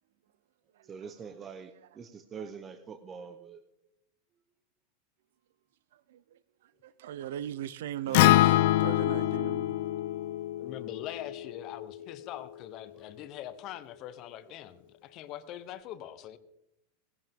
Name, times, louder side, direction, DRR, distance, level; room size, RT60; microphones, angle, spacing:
voice 1, 0.8-3.6 8.1-8.5 12.9-13.0, right 6 dB, 25° right, 0.8 m, -45 dB
voice 2, 6.8-9.8, right 11 dB, 80° right, 0.6 m, -38 dB
Acoustic guitar, 8.1-12.4, left 15 dB, 65° left, 0.4 m, -26 dB
voice 3, 10.6-16.4, left 11 dB, 45° left, 0.9 m, -43 dB
17.5 x 11.0 x 3.7 m
supercardioid pair, 125°, 0 cm